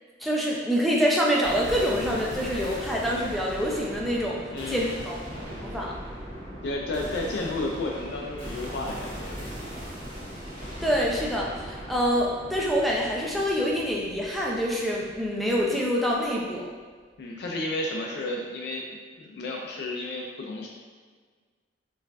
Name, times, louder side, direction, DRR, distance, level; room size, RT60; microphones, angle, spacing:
voice 1, 0.2-4.4 4.7-5.2 5.6-5.9 10.8-16.7, equal, ahead, -4 dB, 0.4 m, -26 dB
sound 1, 1.4-15.7, equal, 45° right, 1.1 m, -39 dB
voice 2, 4.5-5.0 6.6-9.5 15.6-15.7 17.2-20.7, left 2 dB, 60° left, -1 dB, 0.4 m, -32 dB
4.6 x 2.4 x 2.3 m, 1.5 s
head